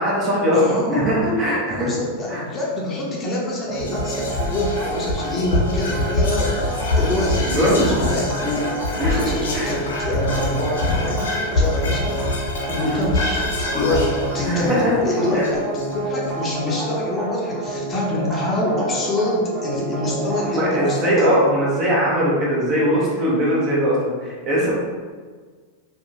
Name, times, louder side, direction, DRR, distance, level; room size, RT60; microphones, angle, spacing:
voice 1, 0.0-0.6 0.9-1.9 2.3-2.4 7.5-8.0 9.0-9.2 9.5-9.7 12.8-13.0 14.4-14.9 15.3-15.4 20.4-24.7, equal, 35° right, -5 dB, 1.0 m, -20 dB
voice 2, 0.5-1.0 1.8-8.7 8.9-12.2 12.7-14.1 14.3-21.4, left 1 dB, 25° left, -3 dB, 0.7 m, -25 dB
sound 1, 3.7-21.6, right 1 dB, 10° right, 0.7 m, -29 dB
Whispering, 3.8-16.2, left 2 dB, 75° left, 0.6 m, -25 dB
2.7 x 2.3 x 2.7 m, 1.5 s
hypercardioid pair, 95°, 0 cm